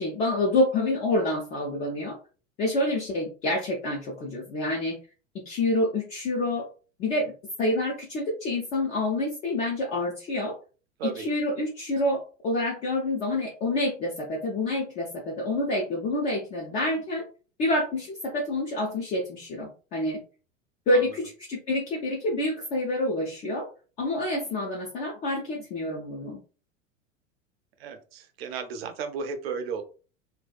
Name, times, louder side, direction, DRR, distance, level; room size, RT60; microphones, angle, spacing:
voice 1, 0.0-2.2 2.6-5.0 5.3-6.7 7.0-7.3 7.6-10.6 11.0-17.2 17.6-20.2 20.9-23.7 24.0-26.4, left 1 dB, 20° left, -1 dB, 0.3 m, -27 dB
voice 2, 27.8-29.8, right 6 dB, 50° right, 7 dB, 0.6 m, -34 dB
2.7 x 2.2 x 2.3 m, 0.36 s
figure-of-eight pair, 85°, 39 cm